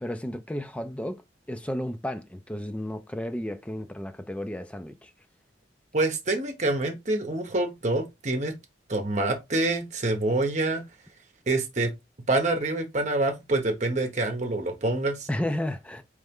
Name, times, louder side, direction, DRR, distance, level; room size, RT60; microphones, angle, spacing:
voice 1, 0.0-1.2 1.5-5.1 15.3-16.0, left 1 dB, 5° left, 0.4 m, -33 dB
voice 2, 5.9-8.5 8.9-10.8 11.5-11.9 12.3-15.3, right 2 dB, 40° right, 1.0 m, -26 dB
4.1 x 3.3 x 3.6 m
head